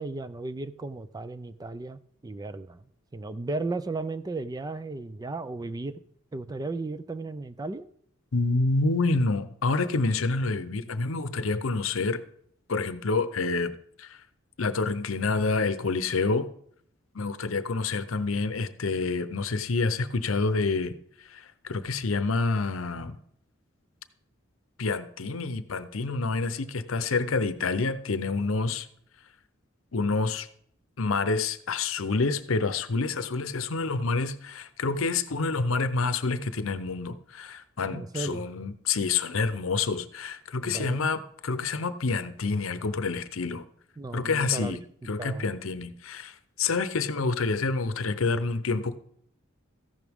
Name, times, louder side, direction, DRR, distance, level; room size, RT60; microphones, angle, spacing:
voice 1, 0.0-2.8 3.1-6.0 6.3-7.9 37.9-38.5 40.6-41.1 44.0-44.8 45.2-45.5, right 2 dB, 20° right, 13 dB, 0.4 m, -35 dB
voice 2, 8.3-12.2 12.7-13.7 14.0-14.2 14.6-16.5 17.1-20.9 21.3-23.2 24.8-28.9 29.9-30.5 31.0-43.6 44.1-44.8 45.1-49.0, left 3 dB, 70° left, 13 dB, 0.7 m, -28 dB
14.0 x 11.0 x 3.6 m, 0.68 s
head